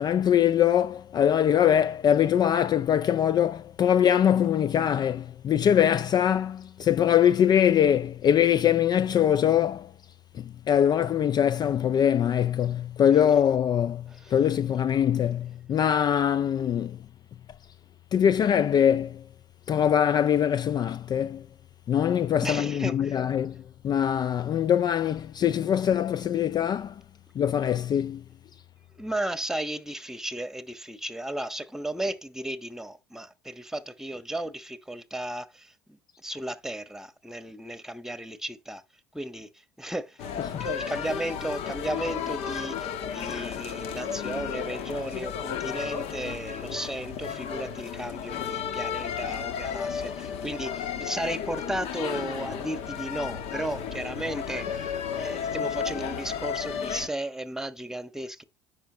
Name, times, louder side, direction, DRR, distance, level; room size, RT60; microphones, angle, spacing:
voice 1, 0.0-9.9 10.3-17.0 18.1-19.2 19.7-21.4 21.9-27.0 27.4-28.2 40.4-40.7, left 9 dB, 35° left, 0.4 m, -23 dB
voice 2, 22.4-23.2 28.9-38.8 39.1-39.5 39.8-58.4, right 1 dB, 5° right, 1.2 m, -35 dB
sound 1, 40.2-57.1, left 7 dB, 60° left, 1.4 m, -33 dB
10.0 x 6.7 x 2.9 m
hypercardioid pair, 75°, 12 cm